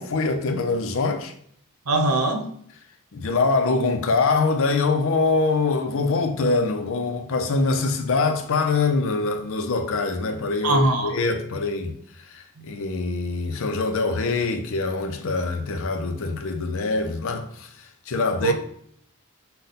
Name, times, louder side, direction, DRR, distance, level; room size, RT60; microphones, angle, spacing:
voice 1, 0.0-1.3 3.1-11.9 12.3-17.7 18.1-18.5, left 3 dB, 65° left, 0.5 m, -24 dB
voice 2, 1.9-2.5 10.6-11.1 12.6-12.7 18.4-18.5, right 2 dB, 85° right, 0.7 m, -21 dB
5.3 x 2.2 x 4.0 m
head